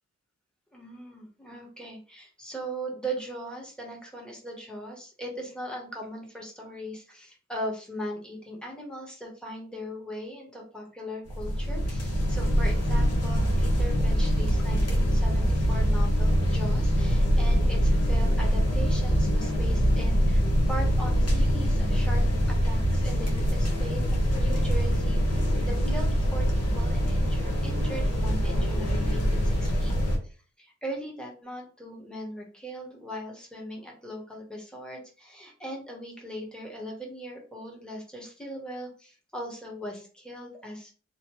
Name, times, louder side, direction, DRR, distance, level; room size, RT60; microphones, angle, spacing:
voice 1, 0.7-22.2 22.5-26.5 26.7-40.9, right 1 dB, 5° left, -2 dB, 1.0 m, -39 dB
sound 1, 11.3-30.2, equal, 60° left, 1.0 m, -24 dB
2.9 x 2.2 x 3.0 m, 0.38 s
wide cardioid pair, 110°, 29 cm